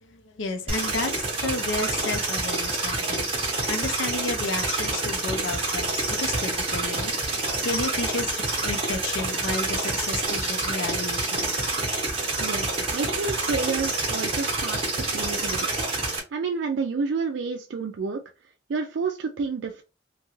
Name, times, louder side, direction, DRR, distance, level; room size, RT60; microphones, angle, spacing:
voice 1, 0.0-11.5, left 3 dB, 80° left, 0.5 m, -32 dB
sound 1, 0.7-16.2, right 3 dB, 30° right, 1.0 m, -27 dB
voice 2, 12.4-15.6 16.3-18.2 18.7-19.8, right 4 dB, 70° right, 0.4 m, -29 dB
2.9 x 2.4 x 3.0 m
head